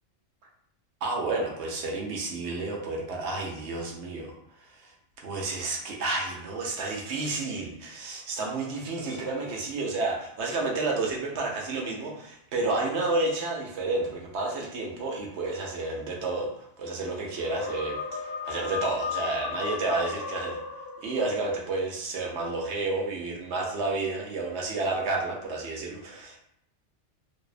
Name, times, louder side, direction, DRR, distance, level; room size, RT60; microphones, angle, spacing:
voice 1, 1.0-4.3 4.8-4.9 5.2-20.6 21.0-26.4, right 3 dB, 70° right, -1 dB, 0.8 m, -30 dB
sound 1, 17.4-21.5, left 5 dB, 55° left, 0.7 m, -35 dB
2.6 x 2.1 x 2.4 m, 0.75 s
omnidirectional pair, 1.3 m